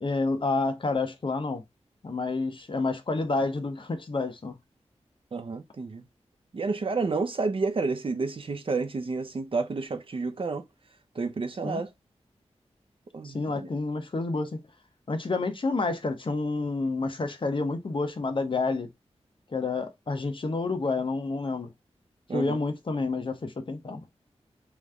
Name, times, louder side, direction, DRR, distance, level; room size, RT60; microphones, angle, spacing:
voice 1, 0.0-1.6 2.0-4.5 11.6-11.8 13.2-14.6 15.1-18.9 19.5-21.7 22.3-24.0, left 3 dB, 45° left, 0.9 m, -29 dB
voice 2, 5.3-6.0 6.5-10.7 11.1-11.9 13.1-13.7 22.3-22.6, right 4 dB, 50° right, 0.6 m, -30 dB
3.3 x 3.1 x 3.6 m
wide cardioid pair, 90°, 11 cm